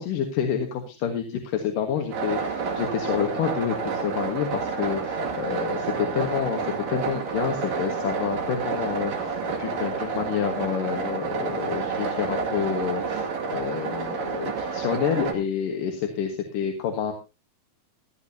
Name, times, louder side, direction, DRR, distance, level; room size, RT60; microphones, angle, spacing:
voice 1, 0.0-17.1, left 8 dB, 65° left, 4 dB, 3.0 m, -28 dB
sound 1, 2.1-15.3, right 5 dB, 65° right, 3.8 m, -29 dB
17.5 x 12.5 x 2.8 m, 0.28 s
omnidirectional pair, 4.3 m